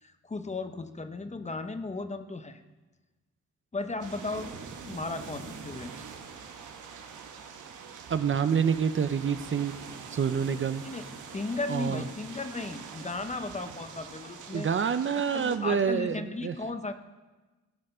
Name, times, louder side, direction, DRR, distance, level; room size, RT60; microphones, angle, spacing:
voice 1, 0.0-2.6 3.7-4.5 4.9-6.1 10.8-11.0 11.3-14.7 15.1-16.9, left 3 dB, 25° left, 9 dB, 0.8 m, -35 dB
sound 1, 4.0-15.6, right 6 dB, 90° right, 1.1 m, -44 dB
voice 2, 8.1-9.8 10.1-10.8 11.7-12.0 14.5-16.5, right 7 dB, 45° right, 12 dB, 0.5 m, -27 dB
17.0 x 6.5 x 5.5 m, 1.2 s
cardioid pair, 95°, 30 cm